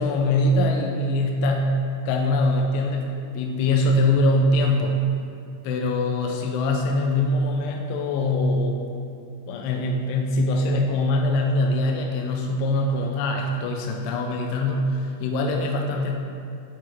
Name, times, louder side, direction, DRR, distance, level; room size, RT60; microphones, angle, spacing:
voice 1, 0.0-1.7 2.1-5.0 5.6-8.8 9.5-16.1, left 1 dB, 85° left, 1 dB, 2.6 m, -23 dB
8.3 x 4.7 x 4.4 m, 2.4 s
omnidirectional pair, 5.0 m